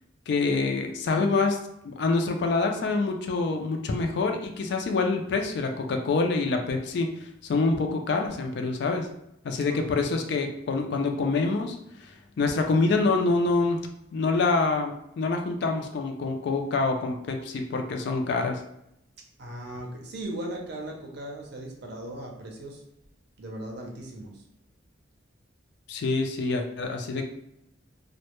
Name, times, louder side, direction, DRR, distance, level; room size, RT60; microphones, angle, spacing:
voice 1, 0.3-1.6 1.8-9.1 9.4-12.1 12.4-13.8 14.1-18.6 25.9-27.3, left 3 dB, 60° left, 4 dB, 0.3 m, -26 dB
voice 2, 9.5-10.0 19.4-22.8 23.4-24.3, right 1 dB, 55° right, 1 dB, 0.5 m, -38 dB
2.1 x 2.1 x 2.9 m, 0.79 s
head